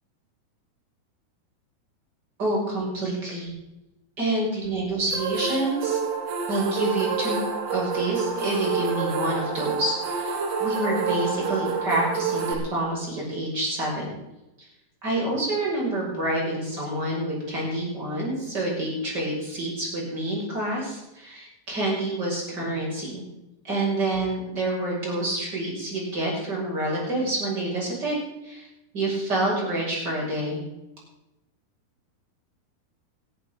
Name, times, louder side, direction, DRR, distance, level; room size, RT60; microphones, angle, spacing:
voice 1, 2.4-3.5 4.2-6.0 6.5-7.4 7.7-14.1 15.0-23.2 23.6-28.2 28.4-28.7 28.9-30.6, right 1 dB, 25° right, -3 dB, 6.7 m, -27 dB
sound 1, 5.1-12.5, right 5 dB, 80° right, 4.3 m, -28 dB
20.0 x 14.0 x 3.9 m, 0.94 s
omnidirectional pair, 4.8 m